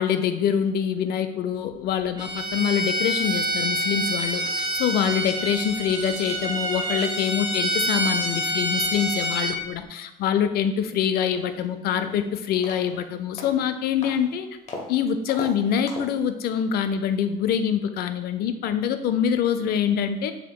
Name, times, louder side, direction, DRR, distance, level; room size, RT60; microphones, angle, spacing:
voice 1, 0.0-14.5 14.9-20.3, left 8 dB, 70° left, 10 dB, 0.4 m, -25 dB
Bowed string instrument, 2.2-9.6, right 1 dB, 25° right, 1.0 m, -27 dB
sound 1, 11.4-11.5 11.9-12.2 12.6-13.0 13.4-13.6 14.0-14.2 14.7-14.9 15.3-15.5 15.9-16.2, left 2 dB, 40° left, 1.0 m, -37 dB
6.7 x 2.8 x 2.2 m, 0.93 s
cardioid pair, 110°, 17 cm